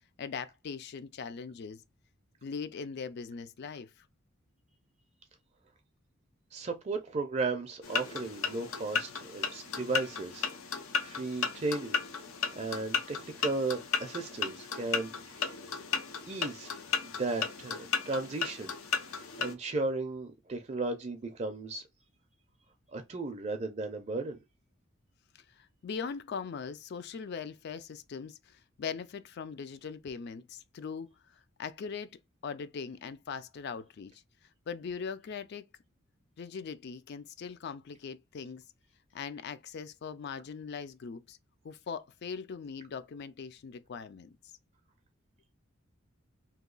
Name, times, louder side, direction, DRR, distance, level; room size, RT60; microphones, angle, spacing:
voice 1, 0.2-1.8 2.4-4.0 25.5-34.2 34.7-35.7 36.4-38.6 39.1-41.4 41.6-44.4, left 5 dB, 50° left, 0.4 m, -41 dB
voice 2, 6.5-10.5 11.0-12.0 12.5-15.6 16.3-16.7 17.0-18.7 19.1-21.9 22.9-24.4, right 3 dB, 35° right, 0.4 m, -35 dB
sound 1, 7.8-19.5, left 5 dB, 85° left, 0.7 m, -35 dB
2.9 x 2.2 x 3.7 m
head